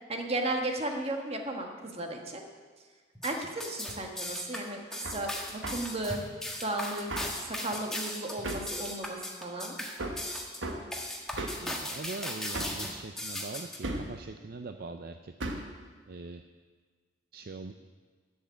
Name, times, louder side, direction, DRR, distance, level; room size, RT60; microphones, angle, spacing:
voice 1, 0.1-2.4 3.2-6.2 6.6-9.8, right 2 dB, 35° right, 2 dB, 1.5 m, -35 dB
sound 1, 3.1-13.8, left 1 dB, 5° left, 1.4 m, -37 dB
Hammer, 5.0-5.2 5.6-5.9 7.1-7.4 8.4-8.8 10.0-10.3 10.6-10.9 11.4-11.7 12.5-12.9 13.8-14.2 15.4-15.7, right 2 dB, 85° right, 1.4 m, -35 dB
voice 2, 11.6-15.7 16.1-16.4 17.3-17.7, right 3 dB, 55° right, 7 dB, 0.5 m, -42 dB
12.0 x 7.4 x 8.2 m, 1.5 s
head